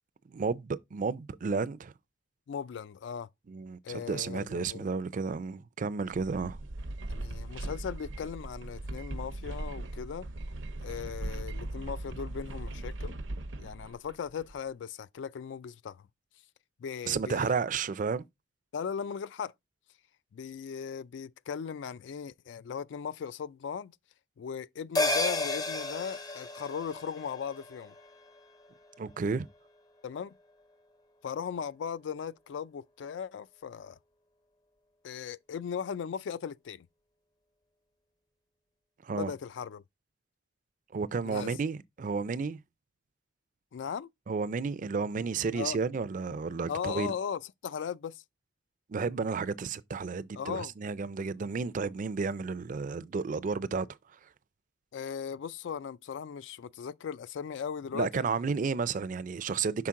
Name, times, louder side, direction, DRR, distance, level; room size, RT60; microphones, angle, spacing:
voice 1, 0.3-1.9 3.5-6.6 17.1-18.2 29.0-29.5 39.0-39.3 40.9-42.6 44.3-47.1 48.9-53.9 57.9-59.9, right 4 dB, 45° right, 0.4 m, -32 dB
voice 2, 2.5-3.3 3.8-4.9 7.1-10.3 10.8-13.1 13.6-16.1 16.8-17.5 18.7-19.5 20.3-23.9 24.4-27.9 30.0-30.3 31.2-34.0 35.0-36.9 39.1-39.8 41.2-41.6 43.7-44.1 45.5-45.8 46.7-48.2 50.3-50.7 54.9-58.1, left 7 dB, 70° left, 0.3 m, -38 dB
sound 1, 6.1-14.6, right 2 dB, 75° right, 0.7 m, -39 dB
sound 2, 24.9-29.7 30.0-30.1, left 2 dB, 20° left, 0.5 m, -34 dB
5.8 x 4.4 x 3.7 m
head